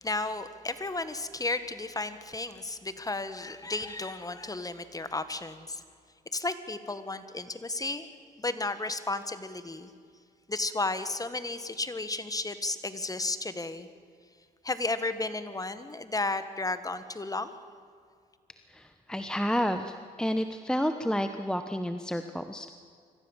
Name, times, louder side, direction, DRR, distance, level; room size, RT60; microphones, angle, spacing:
voice 1, 0.0-5.8 6.3-8.1 8.4-9.9 10.5-13.9 14.6-17.5, left 2 dB, 20° left, 11 dB, 1.7 m, -33 dB
voice 2, 18.7-22.7, equal, 5° left, 8 dB, 1.1 m, -30 dB
24.0 x 15.0 x 7.4 m, 2.1 s
supercardioid pair, 70°, 18 cm